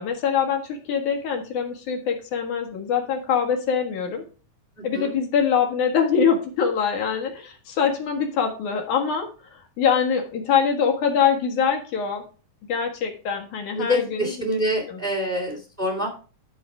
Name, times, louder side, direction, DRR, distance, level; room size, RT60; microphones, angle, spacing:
voice 1, 0.0-4.2 4.8-12.2 12.7-14.6 14.9-15.0, left 7 dB, 70° left, 2 dB, 3.0 m, -24 dB
voice 2, 4.8-5.2 13.8-16.1, equal, 5° right, -1 dB, 1.9 m, -26 dB
12.0 x 4.5 x 4.8 m, 0.36 s
omnidirectional pair, 3.7 m